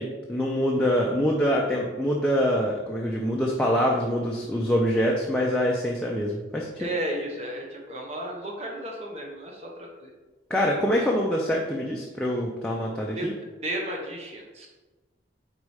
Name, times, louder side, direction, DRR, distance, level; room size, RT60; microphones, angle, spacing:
voice 1, 0.0-6.9 10.5-13.3, equal, 5° left, -3 dB, 0.5 m, -25 dB
voice 2, 6.8-10.1 13.2-13.3 13.6-14.7, right 1 dB, 35° right, 0 dB, 0.9 m, -33 dB
4.8 x 4.1 x 4.8 m, 1.2 s
head